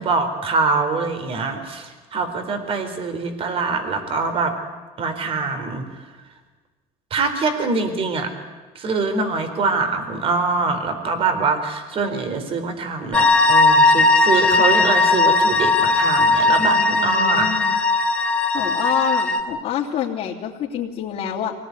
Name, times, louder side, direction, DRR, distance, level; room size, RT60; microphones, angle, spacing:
voice 1, 0.0-4.6 5.0-5.8 7.1-8.3 8.8-17.5, right 4 dB, 45° right, 8 dB, 4.1 m, -24 dB
sound 1, 13.1-19.4, left 3 dB, 5° left, 3.3 m, -17 dB
voice 2, 16.9-17.8 18.5-21.5, left 9 dB, 55° left, -5 dB, 3.2 m, -27 dB
24.5 x 18.0 x 9.7 m, 1.3 s
cardioid pair, 125°, 13 cm